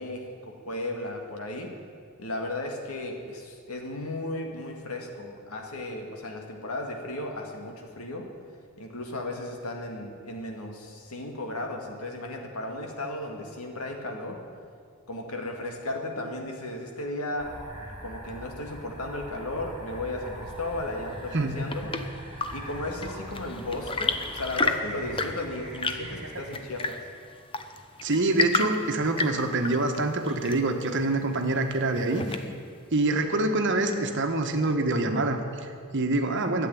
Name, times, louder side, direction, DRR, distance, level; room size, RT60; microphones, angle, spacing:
voice 1, 0.0-1.7 2.2-8.3 8.8-14.4 15.1-17.6 18.0-21.9 22.5-27.0, left 1 dB, 80° left, 2 dB, 2.1 m, -35 dB
sound 1, 17.4-26.6, right 1 dB, 15° right, 3.8 m, -42 dB
Chirp tweet / Engine / Tap, 21.3-32.8, left 4 dB, 25° left, 0.8 m, -33 dB
voice 2, 28.0-32.4 32.9-36.7, right 2 dB, 55° right, 5 dB, 1.4 m, -26 dB
12.5 x 8.2 x 10.0 m, 2.1 s
head